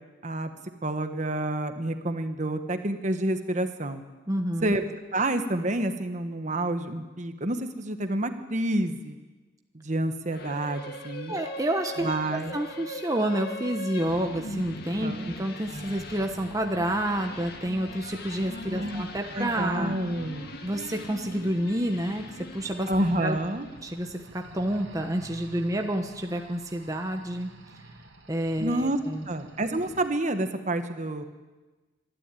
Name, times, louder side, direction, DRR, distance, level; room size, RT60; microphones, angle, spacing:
voice 1, 0.8-4.0 4.6-4.8 5.1-9.2 9.7-11.3 12.0-12.6 15.0-15.3 18.7-19.0 19.3-20.5 22.9-23.7 28.6-29.0 29.3-31.2, right 1 dB, 40° right, 8 dB, 1.3 m, -28 dB
voice 2, 4.3-4.7 11.3-20.0 20.6-22.9 23.2-23.4 23.8-27.5 28.3-29.2, right 1 dB, 15° right, 4 dB, 1.1 m, -29 dB
sound 1, 10.3-23.9, left 1 dB, 55° left, 1.8 m, -40 dB
sound 2, 15.6-30.1, right 1 dB, 70° right, 2.6 m, -49 dB
25.0 x 12.0 x 9.1 m, 1.2 s
head